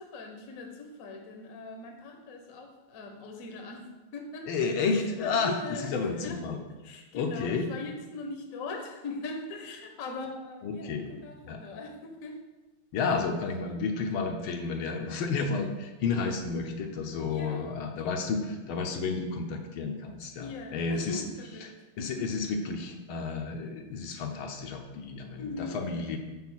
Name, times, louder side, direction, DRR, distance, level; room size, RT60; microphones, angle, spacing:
voice 1, 0.0-4.5 5.2-6.4 6.8-12.4 13.5-13.7 17.3-17.7 20.4-22.3 25.4-25.8, left 3 dB, 50° left, 3 dB, 1.1 m, -40 dB
voice 2, 4.5-6.6 7.1-7.7 10.6-11.1 11.4-11.6 12.9-21.2 21.6-21.7 22.0-26.2, left 4 dB, 75° left, 3 dB, 1.6 m, -31 dB
5.6 x 4.7 x 6.1 m, 1.2 s
omnidirectional pair, 2.4 m